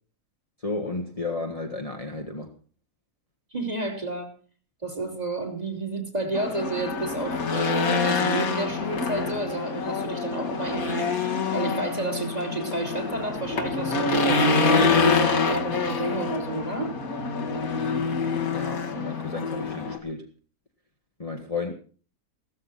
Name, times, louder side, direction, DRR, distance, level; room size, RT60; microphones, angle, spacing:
voice 1, 0.6-2.5 18.5-20.3 21.2-21.7, left 3 dB, 25° left, 2 dB, 1.6 m, -32 dB
voice 2, 3.5-4.3 4.8-11.1 11.5-16.9, right 2 dB, 25° right, 3 dB, 3.1 m, -30 dB
Race car auto racing / Engine, 6.3-20.0, left 4 dB, 65° left, 2.2 m, -26 dB
16.0 x 13.5 x 4.1 m, 0.40 s
omnidirectional pair, 1.6 m